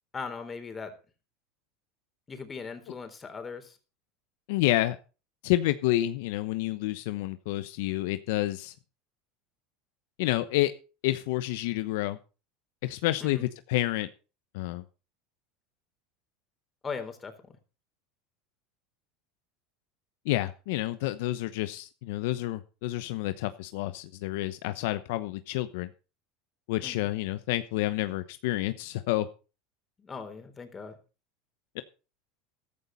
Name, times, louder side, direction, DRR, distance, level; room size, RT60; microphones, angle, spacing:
voice 1, 0.1-0.9 2.3-3.8 13.2-13.5 16.8-17.3 26.8-27.1 30.0-31.0, left 5 dB, 20° left, 7 dB, 3.7 m, -39 dB
voice 2, 4.5-5.0 5.4-8.7 10.2-10.7 11.0-12.2 12.8-14.1 14.5-14.8 20.2-25.9 26.7-29.3 31.7-31.8, left 16 dB, 70° left, 11 dB, 0.9 m, -29 dB
14.0 x 12.5 x 4.1 m, 0.33 s
supercardioid pair, 115°, 0 cm